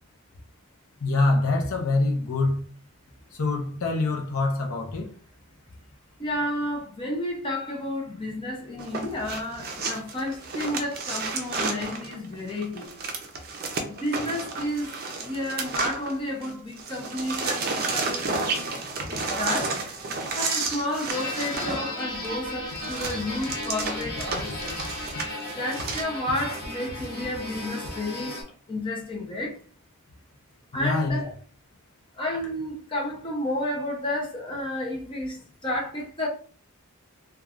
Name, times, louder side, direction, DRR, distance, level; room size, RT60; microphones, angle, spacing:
voice 1, 1.0-2.6 3.3-5.1 30.7-31.3, left 2 dB, 65° left, 0.6 m, -25 dB
voice 2, 6.2-12.9 13.8-18.7 19.1-19.8 20.4-24.7 25.6-28.4 28.7-29.6 30.7-31.3 32.2-36.3, left 1 dB, 20° left, 0.6 m, -31 dB
sound 1, 8.8-16.5 16.8-26.0, right 3 dB, 45° right, 0.5 m, -31 dB
sound 2, 21.1-28.4, left 1 dB, 45° left, 1.2 m, -35 dB
3.0 x 2.3 x 2.4 m
head